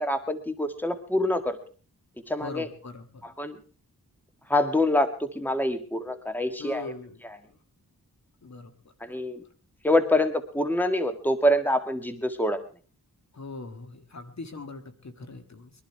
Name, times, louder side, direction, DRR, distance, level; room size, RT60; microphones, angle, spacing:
voice 1, 0.0-1.6 2.3-2.7 3.2-3.6 4.5-6.9 9.0-9.4 9.8-12.6, left 1 dB, 5° left, 9 dB, 1.9 m, -25 dB
voice 2, 2.4-3.3 6.6-7.2 7.5-7.6 8.4-8.7 9.1-9.2 13.3-15.7, left 3 dB, 50° left, 7 dB, 2.0 m, -41 dB
22.5 x 11.5 x 4.7 m, 0.39 s
cardioid pair, 55°, 34 cm